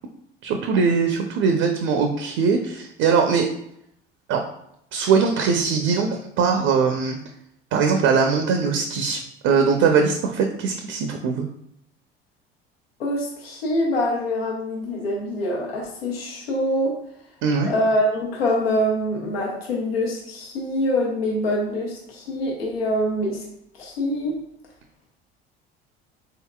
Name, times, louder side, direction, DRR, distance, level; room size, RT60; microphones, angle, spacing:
voice 1, 0.4-3.5 4.3-4.5 4.9-7.2 7.7-11.5 17.4-17.7, right 5 dB, 50° right, 4 dB, 0.6 m, -21 dB
voice 2, 13.0-16.9 17.6-23.4 23.8-24.3, left 1 dB, 80° left, -2 dB, 1.0 m, -24 dB
4.0 x 3.7 x 2.3 m, 0.74 s
figure-of-eight pair, 60°, 30 cm